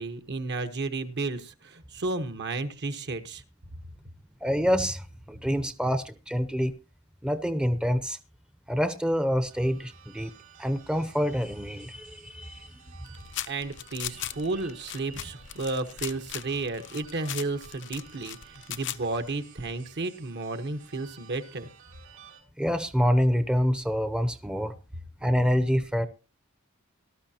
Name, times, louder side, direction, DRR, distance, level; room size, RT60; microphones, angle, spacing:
voice 1, 0.0-3.4 13.5-21.7, right 3 dB, 55° right, 1.2 m, -32 dB
voice 2, 4.4-6.7 7.2-8.2 8.7-10.3 10.6-12.7 22.6-24.7 25.2-26.1, equal, 5° right, 0.7 m, -26 dB
sound 1, 9.5-22.4, right 9 dB, 85° right, 4.5 m, -54 dB
sound 2, 13.1-19.3, left 12 dB, 60° left, 0.7 m, -38 dB
18.5 x 13.0 x 2.9 m
head